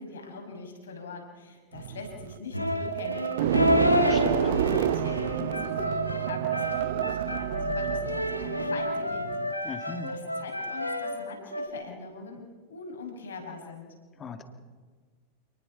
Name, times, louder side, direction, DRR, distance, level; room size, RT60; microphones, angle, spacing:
voice 1, 0.0-3.8 4.1-9.3 9.6-12.4 12.7-13.9, left 4 dB, 65° left, 3 dB, 5.9 m, -42 dB
sound 1, 1.7-9.5, right 11 dB, 55° right, 1.0 m, -29 dB
sound 2, 2.5-11.7, left 1 dB, 90° left, 2.0 m, -29 dB
voice 2, 3.9-4.4 9.6-10.1 14.2-14.4, left 4 dB, 25° left, 8 dB, 2.5 m, -38 dB
28.5 x 20.0 x 5.7 m, 1.5 s
figure-of-eight pair, 90°, 0 cm